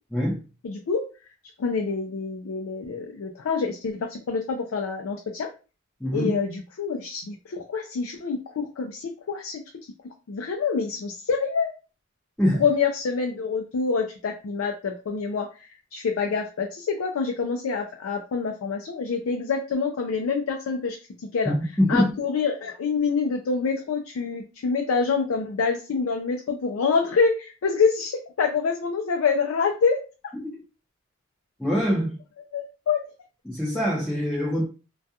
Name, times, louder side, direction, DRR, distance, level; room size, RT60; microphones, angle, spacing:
voice 1, 0.6-1.1 1.6-5.5 6.1-9.6 10.3-11.7 12.6-21.0 21.3-21.5 21.9-30.0 32.5-33.0, left 5 dB, 90° left, 0.4 m, -26 dB
voice 2, 6.0-6.3 12.4-12.6 21.5-22.1 30.4-30.5 31.6-32.2 33.4-34.6, equal, 5° left, 0.5 m, -24 dB
2.3 x 2.2 x 2.7 m
head